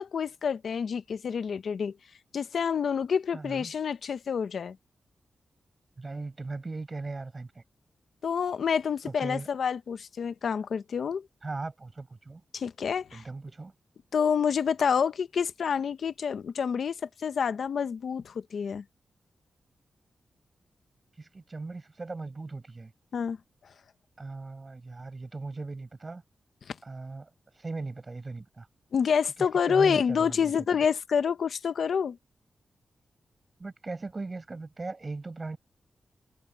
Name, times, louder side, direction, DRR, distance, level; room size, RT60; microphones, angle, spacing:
voice 1, 0.0-1.9 2.3-4.8 8.2-11.3 12.5-13.2 14.1-18.8 23.1-23.4 26.7-26.8 28.9-32.2, left 6 dB, 65° left, 0.9 m, -28 dB
voice 2, 3.3-3.7 6.0-7.6 9.0-9.5 11.4-12.4 13.1-13.7 21.2-22.9 24.2-26.2 26.8-27.3 27.6-28.7 29.7-30.8 33.6-35.6, right 3 dB, 25° right, 5.7 m, -38 dB
wide cardioid pair, 170°, 0 cm